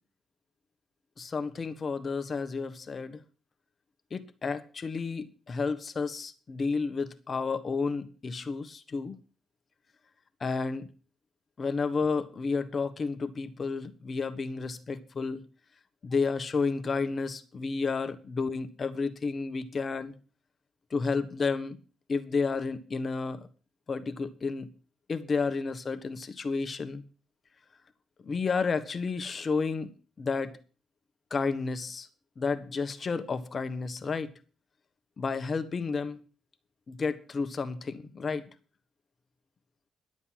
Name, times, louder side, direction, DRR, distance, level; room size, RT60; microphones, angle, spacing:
voice 1, 1.2-3.2 4.1-9.2 10.4-10.9 11.6-15.4 16.0-20.1 20.9-21.8 22.1-23.4 23.9-24.7 25.1-27.0 28.2-29.9 30.2-30.6 31.3-32.1 32.4-34.3 35.2-36.2 36.9-38.4, left 4 dB, 40° left, 1.3 m, -31 dB
11.5 x 7.9 x 7.5 m
cardioid pair, 90°, 0 cm